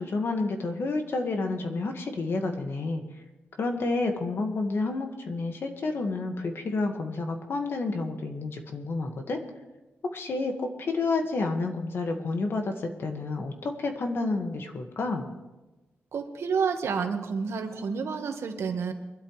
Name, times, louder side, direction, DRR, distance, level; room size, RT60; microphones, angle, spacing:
voice 1, 0.0-3.0 3.6-9.4 10.0-15.3, left 3 dB, 60° left, 4 dB, 1.7 m, -30 dB
voice 2, 16.1-18.9, right 5 dB, 85° right, 5 dB, 1.5 m, -29 dB
23.0 x 12.5 x 3.2 m, 1.1 s
wide cardioid pair, 160°, 5 cm